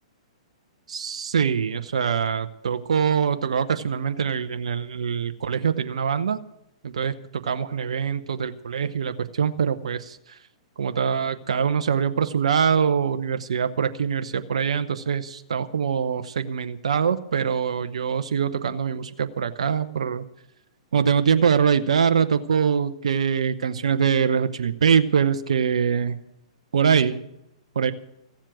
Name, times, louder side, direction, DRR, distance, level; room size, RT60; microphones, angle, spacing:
voice 1, 0.9-6.4 6.8-7.1 7.4-10.4 10.8-20.2 20.9-26.2 26.7-27.2 27.7-27.9, right 7 dB, 75° right, 9 dB, 0.8 m, -23 dB
15.5 x 7.4 x 9.1 m, 0.83 s
hypercardioid pair, 120°, 3 cm